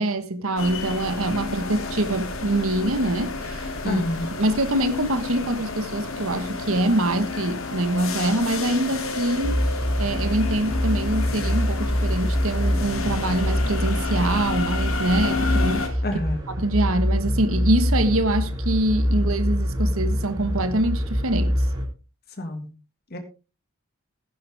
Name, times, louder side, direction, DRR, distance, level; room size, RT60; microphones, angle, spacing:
voice 1, 0.0-4.0 4.4-9.6 10.0-15.9 16.6-21.6, right 1 dB, 70° right, 1.4 m, -24 dB
sound 1, 0.6-15.9, left 3 dB, 70° left, 2.8 m, -31 dB
voice 2, 3.8-4.3 16.0-16.5 22.4-22.7 23.1-23.2, left 1 dB, 45° left, 1.8 m, -28 dB
sound 2, 9.4-21.8, equal, 20° right, 3.2 m, -25 dB
16.0 x 10.0 x 3.5 m
head